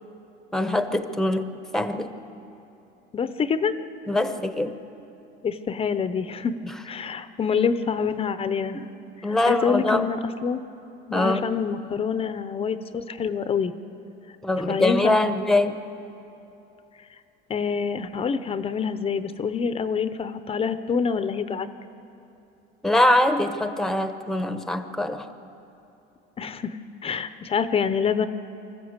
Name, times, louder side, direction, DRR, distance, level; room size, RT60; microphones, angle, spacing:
voice 1, 0.5-2.2 4.1-4.8 6.6-6.8 8.7-8.9 9.2-10.1 11.1-11.5 14.4-15.8 22.8-25.3, left 1 dB, ahead, 9 dB, 0.9 m, -23 dB
voice 2, 3.1-3.7 5.4-6.5 6.8-8.8 9.2-10.6 11.1-13.7 14.7-15.2 17.5-21.7 26.4-26.8 27.0-28.3, left 6 dB, 30° left, 11 dB, 0.7 m, -26 dB
25.5 x 14.0 x 8.1 m, 2.9 s
cardioid pair, 140°, 21 cm